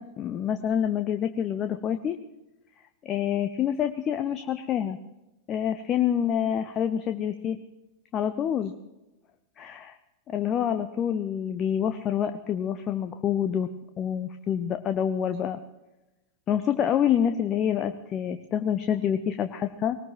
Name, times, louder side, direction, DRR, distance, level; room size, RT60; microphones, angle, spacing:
voice 1, 0.0-2.2 3.0-5.0 5.5-7.6 8.1-8.7 9.6-9.9 10.3-13.7 14.0-15.6 16.5-20.0, left 9 dB, 30° left, 8 dB, 0.8 m, -27 dB
21.0 x 19.5 x 3.0 m, 1.0 s
figure-of-eight pair, 90°, 0 cm